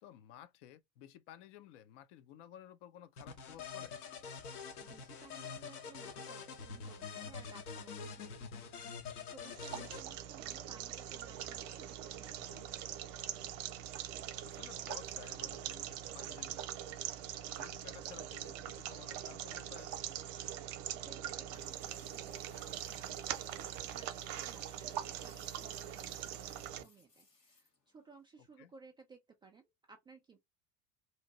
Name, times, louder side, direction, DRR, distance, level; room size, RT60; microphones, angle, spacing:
voice 1, 0.0-4.0 12.4-12.7 14.4-16.7 17.5-20.1 28.4-28.7, left 11 dB, 45° left, 0.6 m, -55 dB
sound 1, 3.2-10.0, left 5 dB, 65° left, 1.1 m, -46 dB
voice 2, 4.8-8.2 8.5-8.9 9.2-12.5 21.0-30.4, right 4 dB, 10° right, 0.4 m, -59 dB
sound 2, 9.4-26.8, right 11 dB, 40° right, 0.7 m, -43 dB
sound 3, 21.5-28.2, left 3 dB, 85° left, 1.5 m, -63 dB
3.2 x 2.6 x 3.8 m
figure-of-eight pair, 75°, 48 cm